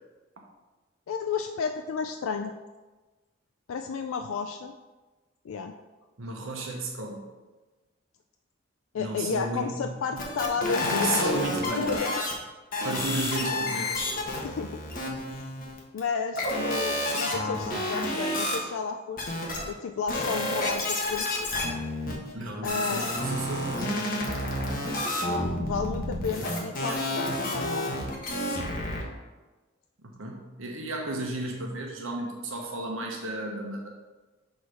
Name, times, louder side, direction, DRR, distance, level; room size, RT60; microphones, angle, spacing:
voice 1, 1.1-2.5 3.7-4.7 5.4-5.7 8.9-11.5 11.8-12.2 14.3-14.8 15.3-15.5 15.9-19.3 19.6-21.3 22.6-23.1 25.3-27.9, left 5 dB, 75° left, 6 dB, 0.4 m, -32 dB
voice 2, 6.2-7.2 9.0-10.0 10.6-11.9 12.8-13.9 22.3-24.1 30.0-33.9, right 2 dB, 70° right, 0 dB, 1.0 m, -33 dB
sound 1, 10.2-12.3 12.7-16.0 16.4-18.6 19.2-19.7 20.1-29.0, left 1 dB, 45° left, 1.2 m, -30 dB
6.3 x 4.1 x 4.8 m, 1.2 s
head